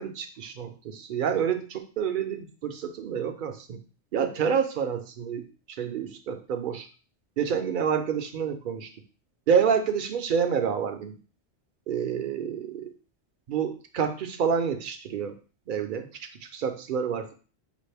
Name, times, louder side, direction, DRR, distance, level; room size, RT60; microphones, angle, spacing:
voice 1, 0.0-3.8 4.1-5.4 5.8-6.9 7.4-8.9 9.5-11.2 11.9-12.9 13.5-15.3 15.7-16.1 16.6-17.3, right 7 dB, 55° right, 7 dB, 0.6 m, -28 dB
4.9 x 2.5 x 3.3 m, 0.37 s
omnidirectional pair, 1.2 m